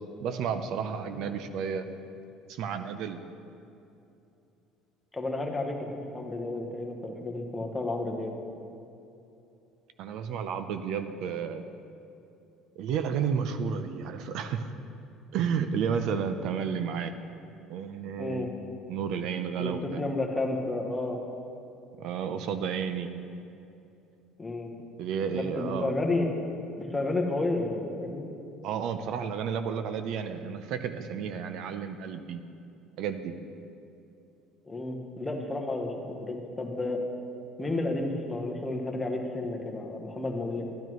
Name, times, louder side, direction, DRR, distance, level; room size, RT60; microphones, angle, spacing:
voice 1, 0.2-1.9 2.5-3.2 10.0-11.6 12.8-14.7 15.3-17.1 17.7-18.5 18.9-20.0 22.0-23.1 25.0-25.9 28.6-32.4 33.0-33.3, right 7 dB, 60° right, 9 dB, 0.5 m, -31 dB
voice 2, 5.1-8.3 18.2-18.5 19.6-21.2 24.4-24.7 25.3-26.3 26.8-28.3 34.6-37.0 37.6-40.7, left 2 dB, 10° left, 1 dB, 1.0 m, -31 dB
12.0 x 10.5 x 3.1 m, 2.8 s
cardioid pair, 150°, 0 cm